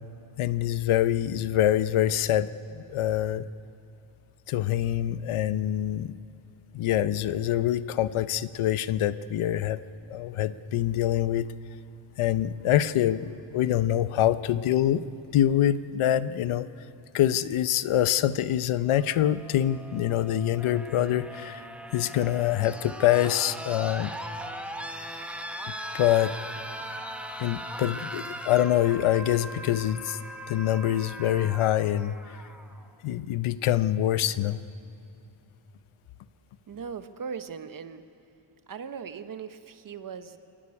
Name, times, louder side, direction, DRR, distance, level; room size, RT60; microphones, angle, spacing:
voice 1, 0.4-3.4 4.5-6.1 6.7-9.8 10.1-11.5 12.2-15.0 15.3-16.7 17.1-21.6 21.9-24.1 25.9-26.3 27.4-30.2 30.5-32.4 33.0-34.6, left 12 dB, 90° left, 15 dB, 0.7 m, -25 dB
sound 1, 18.9-32.8 34.1-34.2, equal, 5° right, 0.9 m, -39 dB
voice 2, 36.7-38.0 38.7-40.4, right 6 dB, 45° right, 10 dB, 0.9 m, -39 dB
26.0 x 11.5 x 9.8 m, 2.6 s
wide cardioid pair, 150°, 48 cm